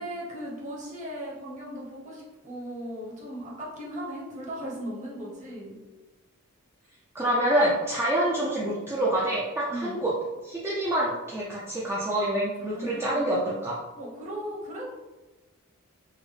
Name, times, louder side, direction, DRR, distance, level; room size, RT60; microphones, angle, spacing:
voice 1, 0.0-5.8 9.7-10.0 12.6-13.2 14.0-14.9, equal, 35° right, -5 dB, 0.9 m, -37 dB
voice 2, 7.1-10.1 10.4-13.8, right 1 dB, 10° right, -7 dB, 0.4 m, -26 dB
3.7 x 2.0 x 3.2 m, 1.1 s
head